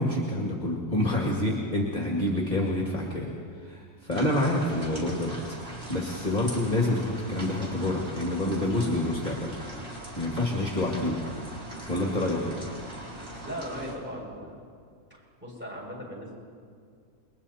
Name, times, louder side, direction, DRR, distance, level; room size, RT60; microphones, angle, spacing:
voice 1, 0.0-3.3 3.6-9.6 10.2-11.2 11.9-12.6, left 1 dB, 25° left, -1 dB, 2.2 m, -28 dB
sound 1, 4.1-13.9, right 1 dB, 40° right, 4.2 m, -40 dB
voice 2, 13.4-14.6 15.1-16.3, equal, 5° right, -3 dB, 6.8 m, -38 dB
29.0 x 23.0 x 4.3 m, 2.2 s
omnidirectional pair, 1.7 m